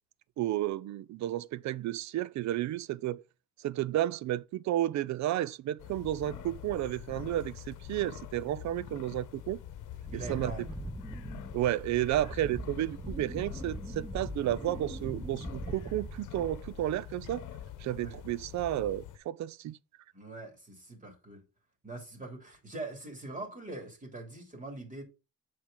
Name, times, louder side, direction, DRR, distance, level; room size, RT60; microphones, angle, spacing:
voice 1, 0.4-3.2 3.6-9.6 10.1-10.5 11.5-17.4 17.8-19.8, right 13 dB, 65° right, 0.5 m, -32 dB
sound 1, 5.8-19.2, left 11 dB, 85° left, 0.9 m, -45 dB
Wind, 10.0-16.9 17.2-17.7, right 1 dB, 5° right, 0.6 m, -42 dB
voice 2, 10.1-10.7 17.9-18.2 20.1-21.4 21.8-25.0, right 2 dB, 25° right, 3.2 m, -43 dB
7.2 x 4.8 x 3.8 m
cardioid pair, 90°, 30 cm